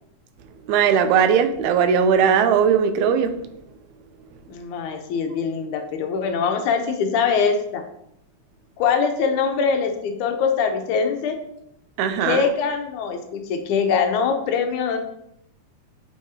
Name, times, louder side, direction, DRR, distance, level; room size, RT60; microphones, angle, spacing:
voice 1, 0.7-3.3 12.0-12.4, right 7 dB, 85° right, 9 dB, 2.0 m, -18 dB
voice 2, 4.5-7.8 8.8-11.4 12.2-15.0, left 6 dB, 90° left, 5 dB, 2.2 m, -23 dB
7.8 x 4.8 x 2.8 m, 0.78 s
omnidirectional pair, 3.3 m